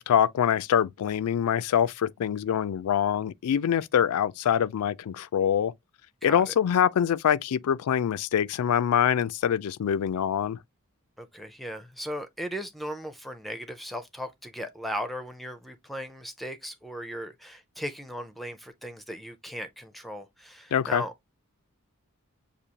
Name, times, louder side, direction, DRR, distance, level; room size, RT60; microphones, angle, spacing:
voice 1, 0.0-5.7 6.2-10.6 20.7-21.0, left 9 dB, 85° left, 0.3 m, -24 dB
voice 2, 6.2-6.5 11.2-21.3, equal, ahead, 0.4 m, -37 dB
6.7 x 2.7 x 2.8 m
head